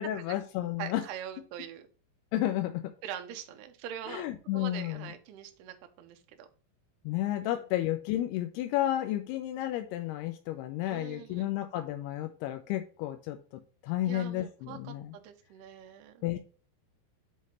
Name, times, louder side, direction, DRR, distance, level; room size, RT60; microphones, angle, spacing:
voice 1, 0.0-1.0 2.3-2.9 4.1-5.1 7.1-13.4 13.8-15.1 16.2-16.4, left 13 dB, 85° left, 2.3 m, -32 dB
voice 2, 0.8-1.9 3.0-4.2 4.5-6.5 7.4-7.6 10.9-11.5 14.1-16.2, right 10 dB, 80° right, 2.6 m, -43 dB
7.4 x 3.1 x 5.3 m
omnidirectional pair, 5.1 m